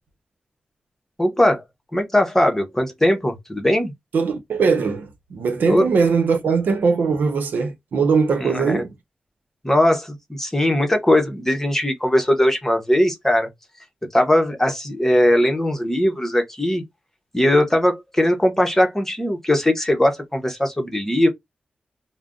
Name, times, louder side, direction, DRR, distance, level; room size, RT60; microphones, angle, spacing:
voice 1, 1.2-1.6 1.9-3.9 5.7-5.8 8.4-8.8 9.6-13.5 14.1-16.8 17.3-21.3, left 1 dB, 15° left, 0.8 m, -19 dB
voice 2, 4.1-9.0, right 5 dB, 85° right, 0.8 m, -20 dB
2.5 x 2.1 x 3.5 m
wide cardioid pair, 90°, 3 cm